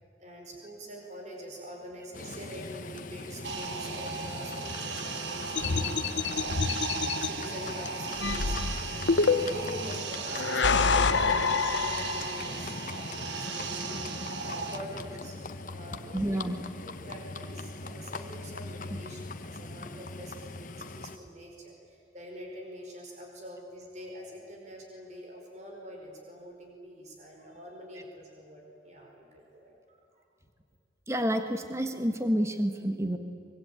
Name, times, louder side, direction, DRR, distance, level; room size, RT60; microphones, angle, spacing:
voice 1, 0.2-15.3 15.7-16.5 16.8-30.0, equal, 40° right, 0 dB, 5.0 m, -45 dB
Livestock farm animals working animals, 2.1-21.2, left 3 dB, 45° left, 1.0 m, -41 dB
sound 1, 3.4-14.8, right 5 dB, 75° right, 1.5 m, -37 dB
sound 2, 5.6-7.3 8.2-9.7 10.3-12.5, left 4 dB, 85° left, 1.1 m, -27 dB
voice 2, 16.1-16.6 31.1-33.2, equal, 15° right, 6 dB, 1.4 m, -29 dB
24.5 x 24.0 x 9.1 m, 2.6 s
head